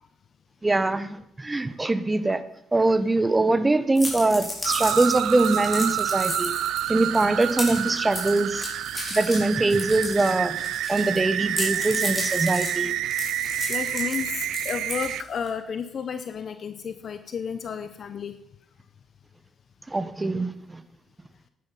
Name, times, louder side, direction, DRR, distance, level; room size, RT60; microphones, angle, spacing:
voice 1, 0.6-2.4 2.7-6.5 6.9-8.7 9.1-10.6 10.9-12.9 19.9-20.8, right 2 dB, 20° right, 13 dB, 1.0 m, -23 dB
sound 1, 3.9-11.2 11.5-15.5, left 1 dB, 15° left, 4.7 m, -34 dB
sound 2, 4.6-15.2, right 12 dB, 85° right, 0.4 m, -28 dB
voice 2, 13.7-18.3, left 7 dB, 55° left, 10 dB, 0.8 m, -32 dB
11.5 x 10.0 x 5.5 m, 0.78 s
cardioid pair, 90°, 0 cm